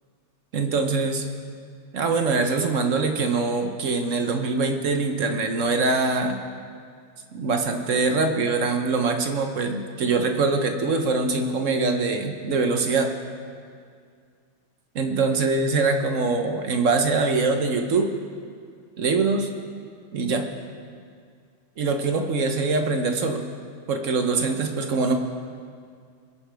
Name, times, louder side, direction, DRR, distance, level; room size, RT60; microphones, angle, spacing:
voice 1, 0.5-1.2 1.9-6.4 7.3-13.1 14.9-18.1 19.0-19.5 20.1-20.4 21.8-23.4 23.9-25.2, right 3 dB, 55° right, 5 dB, 0.9 m, -23 dB
22.0 x 9.8 x 3.4 m, 2.2 s
omnidirectional pair, 2.2 m